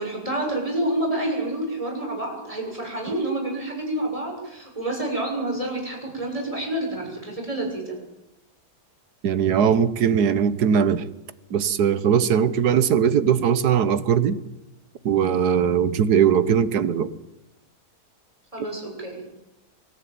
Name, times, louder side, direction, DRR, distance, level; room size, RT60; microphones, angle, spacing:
voice 1, 0.0-8.0 12.7-12.8 18.5-19.2, right 1 dB, 20° right, 0 dB, 6.9 m, -28 dB
voice 2, 9.2-11.0 11.5-14.4 15.0-17.1, right 8 dB, 80° right, 14 dB, 1.6 m, -20 dB
24.0 x 15.0 x 9.2 m, 0.94 s
omnidirectional pair, 1.7 m